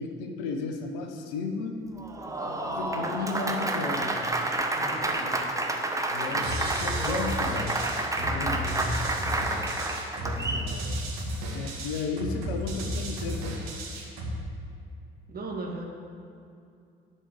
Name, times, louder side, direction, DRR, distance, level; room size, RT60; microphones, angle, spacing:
voice 1, 0.0-1.8 2.4-4.5 6.1-7.9 8.1-8.8 11.5-13.6, left 4 dB, 60° left, 5 dB, 1.0 m, -34 dB
Applause, 2.0-10.7, right 2 dB, 10° right, 1.2 m, -29 dB
voice 2, 4.8-5.3 6.2-6.5 10.2-10.9 15.3-15.8, right 2 dB, 30° right, -1 dB, 2.1 m, -38 dB
sound 1, 6.4-14.4, equal, 60° right, 2.1 m, -33 dB
11.0 x 5.4 x 8.1 m, 2.5 s
figure-of-eight pair, 50°, 30 cm